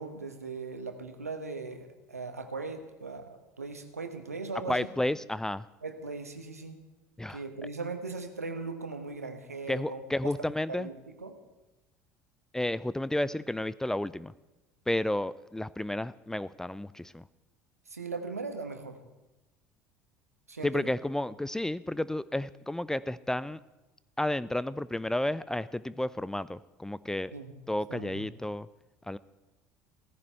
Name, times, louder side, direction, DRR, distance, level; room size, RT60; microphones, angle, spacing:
voice 1, 0.0-4.9 5.8-6.8 7.3-10.3 10.8-11.4 17.9-19.0 20.5-20.9 27.3-27.5 27.9-28.3, right 3 dB, 85° right, 7 dB, 1.2 m, -39 dB
voice 2, 4.7-5.7 7.2-7.4 9.7-10.9 12.5-14.3 14.9-17.2 20.6-23.6 24.2-27.3 27.7-28.7 29.1-29.2, left 1 dB, 5° left, 18 dB, 0.4 m, -31 dB
16.5 x 15.0 x 4.5 m, 1.1 s
figure-of-eight pair, 65°, 8 cm